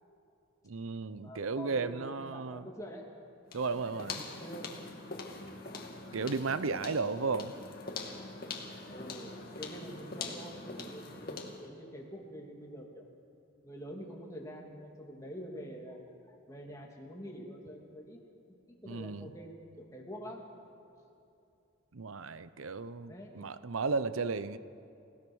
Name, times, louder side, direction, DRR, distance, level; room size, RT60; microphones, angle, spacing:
voice 1, 0.7-2.7 3.5-4.2 6.1-7.5 18.9-19.3 21.9-24.6, right 4 dB, 85° right, 13 dB, 0.7 m, -34 dB
voice 2, 1.2-3.0 4.4-4.8 8.8-13.0 13.6-18.2 18.8-20.4 23.0-23.3, equal, 15° left, -1 dB, 2.8 m, -46 dB
sound 1, 3.5-11.7, left 3 dB, 45° left, 2.3 m, -43 dB
30.0 x 17.0 x 6.3 m, 2.7 s
head